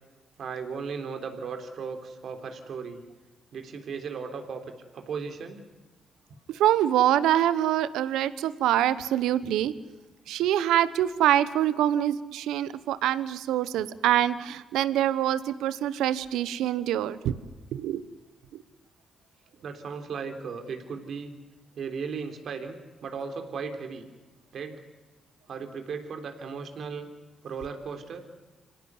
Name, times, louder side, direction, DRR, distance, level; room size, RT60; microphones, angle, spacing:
voice 1, 0.4-3.0 3.5-5.6 19.6-21.3 21.8-22.8 23.0-24.1 24.5-24.8 25.5-27.1 27.4-28.3, right 5 dB, 65° right, 6 dB, 3.5 m, -36 dB
voice 2, 6.5-9.7 10.3-17.3 17.7-18.0 18.5-18.6, right 12 dB, 80° right, 16 dB, 1.0 m, -25 dB
26.0 x 17.5 x 9.6 m, 1.2 s
supercardioid pair, 50°, 0 cm